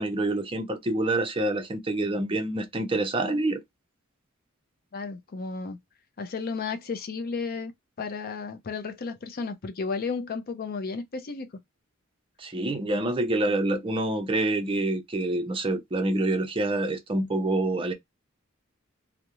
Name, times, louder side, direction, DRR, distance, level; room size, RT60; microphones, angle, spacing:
voice 1, 0.0-3.6 12.4-17.9, right 2 dB, 25° right, 0.5 m, -27 dB
voice 2, 4.9-5.8 6.2-7.7 8.0-11.5, left 4 dB, 45° left, 0.5 m, -33 dB
2.4 x 2.1 x 2.9 m
head